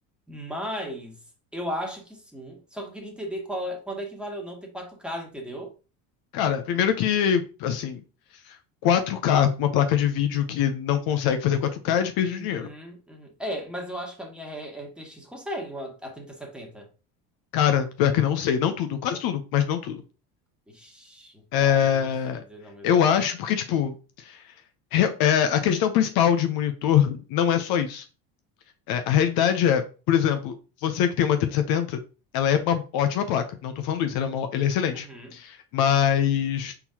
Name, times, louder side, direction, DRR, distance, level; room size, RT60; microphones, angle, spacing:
voice 1, 0.3-1.2 1.5-5.7 12.2-16.9 20.7-22.1 22.5-23.2 34.9-35.3, equal, ahead, 1.5 m, -36 dB
voice 2, 6.3-8.0 8.5-8.6 8.8-12.7 17.5-20.0 21.5-22.4 22.8-24.4 24.9-28.1 28.9-30.6 30.8-32.0 32.3-35.1 35.3-36.7, left 9 dB, 65° left, 0.7 m, -23 dB
4.4 x 3.8 x 2.8 m
supercardioid pair, 85°, 40 cm